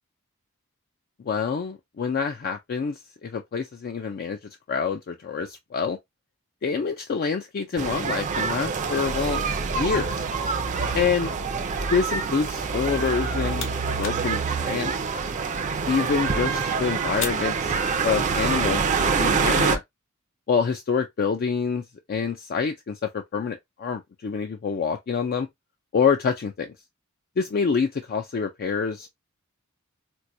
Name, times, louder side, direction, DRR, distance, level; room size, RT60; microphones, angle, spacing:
voice 1, 1.2-4.4 4.7-6.0 6.6-9.5 9.7-10.2 10.9-11.3 11.9-13.7 14.0-14.9 15.9-19.8 20.5-21.8 22.1-25.5 25.9-26.7 27.4-29.1, left 5 dB, 45° left, 0.4 m, -26 dB
sound 1, 7.8-19.8, right 5 dB, 35° right, 0.5 m, -26 dB
sound 2, 13.1-18.4, left 6 dB, 60° left, 0.8 m, -41 dB
4.4 x 2.2 x 2.6 m
head